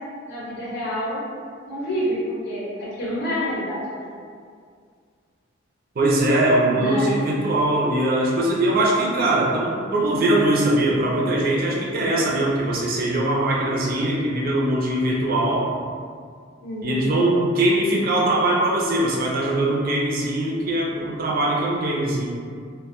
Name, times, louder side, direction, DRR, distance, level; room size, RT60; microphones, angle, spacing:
voice 1, 0.3-1.3 1.6-2.2 2.4-4.1 6.7-7.3 16.6-17.1, equal, 60° left, -7 dB, 0.7 m, -28 dB
voice 2, 6.0-15.6 16.8-22.3, right 1 dB, 50° right, -4 dB, 0.5 m, -21 dB
2.1 x 2.1 x 2.8 m, 2.1 s
head